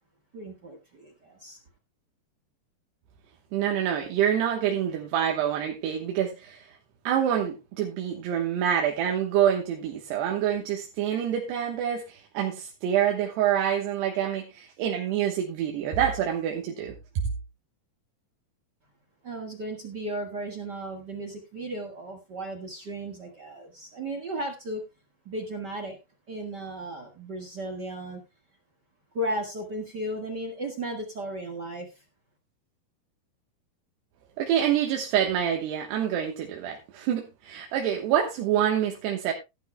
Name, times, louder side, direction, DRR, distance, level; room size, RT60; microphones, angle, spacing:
voice 1, 0.3-1.6 19.2-24.8 25.2-26.0 26.3-28.2 29.1-32.0, right 1 dB, 60° right, 3 dB, 1.1 m, -35 dB
voice 2, 3.5-6.8 7.0-17.0 34.4-39.3, right 9 dB, 90° right, 1 dB, 3.4 m, -26 dB
16.0 x 12.0 x 2.2 m, 0.24 s
omnidirectional pair, 4.6 m